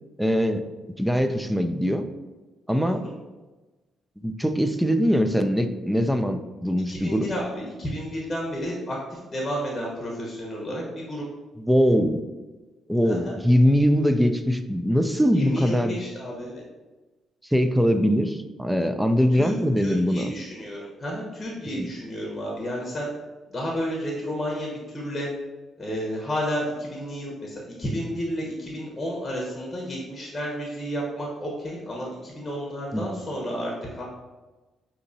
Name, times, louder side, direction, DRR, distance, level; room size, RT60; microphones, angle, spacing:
voice 1, 0.2-0.6 1.0-2.0 2.7-3.0 4.2-7.3 11.6-12.2 12.9-16.0 17.5-20.3 21.7-21.9 32.9-33.2, equal, 5° right, 8 dB, 0.3 m, -22 dB
voice 2, 6.9-11.2 13.0-13.4 15.3-16.6 19.3-23.1 23.5-25.3 25.8-34.0, equal, 20° left, -3 dB, 1.0 m, -31 dB
6.2 x 2.9 x 2.7 m, 1.2 s
cardioid pair, 90°, 0 cm